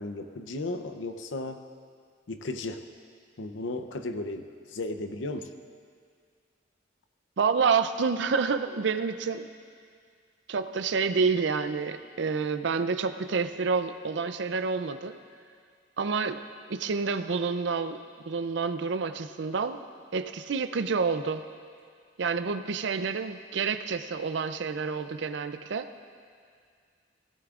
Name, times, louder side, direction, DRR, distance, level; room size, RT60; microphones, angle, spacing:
voice 1, 0.0-1.6 2.3-2.8 3.4-5.5, left 2 dB, 85° left, 8 dB, 0.7 m, -35 dB
voice 2, 7.4-9.5 10.5-15.2 16.0-16.4 16.7-18.0 18.3-19.8 20.1-21.4 22.2-25.9, right 5 dB, 65° right, 10 dB, 0.5 m, -28 dB
17.0 x 13.5 x 2.5 m, 2.1 s
head